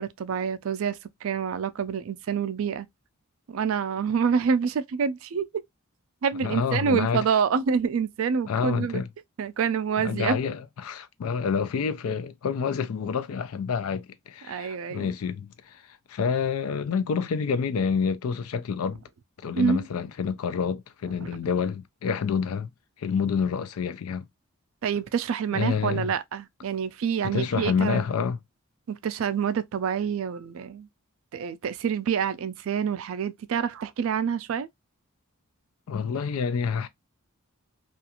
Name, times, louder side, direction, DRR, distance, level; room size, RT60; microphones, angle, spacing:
voice 1, 0.0-2.9 3.5-5.5 6.2-9.0 9.4-10.4 14.5-15.1 19.6-19.9 21.2-21.3 24.8-28.0 28.9-30.9 31.3-34.7, right 6 dB, 65° right, 0.3 m, -27 dB
voice 2, 6.4-7.2 8.5-9.1 10.0-19.0 19.4-22.7 23.0-24.2 25.5-26.1 27.2-28.4 35.9-36.9, left 6 dB, 80° left, 0.4 m, -28 dB
2.4 x 2.4 x 2.8 m
head